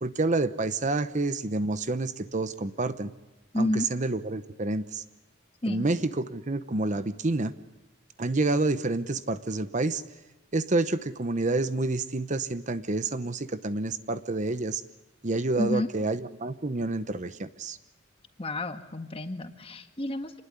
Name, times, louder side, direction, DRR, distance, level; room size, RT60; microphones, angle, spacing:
voice 1, 0.0-3.1 3.6-5.0 5.7-7.5 8.2-10.0 10.5-14.8 15.2-17.8, right 2 dB, 40° right, 12 dB, 0.9 m, -28 dB
voice 2, 3.5-3.9 5.6-5.9 15.6-15.9 18.4-20.3, left 1 dB, 30° left, 7 dB, 1.7 m, -30 dB
27.0 x 20.0 x 9.8 m, 1.0 s
head